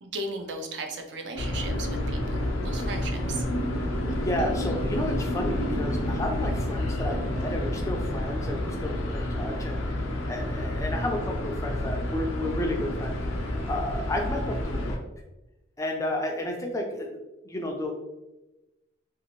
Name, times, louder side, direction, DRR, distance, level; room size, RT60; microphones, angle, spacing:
voice 1, 0.0-3.4, right 2 dB, 60° right, 4 dB, 0.4 m, -36 dB
sound 1, 1.4-15.0, left 1 dB, 80° left, 0.5 m, -29 dB
voice 2, 4.1-10.0 10.3-15.0 15.8-17.1 17.4-18.0, left 1 dB, 15° left, 1 dB, 0.4 m, -32 dB
2.7 x 2.5 x 2.9 m, 1.0 s
head